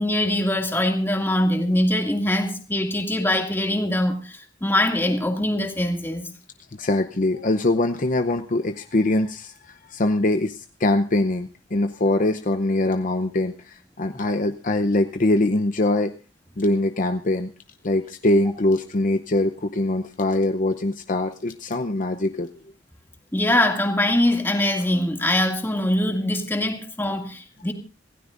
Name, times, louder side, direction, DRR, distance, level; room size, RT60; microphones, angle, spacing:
voice 1, 0.0-6.3 23.3-27.7, left 1 dB, 10° left, 3 dB, 2.3 m, -23 dB
voice 2, 6.8-16.1 16.6-17.5 17.8-22.5, left 2 dB, 45° left, 7 dB, 0.7 m, -23 dB
26.0 x 16.0 x 2.6 m, 0.32 s
head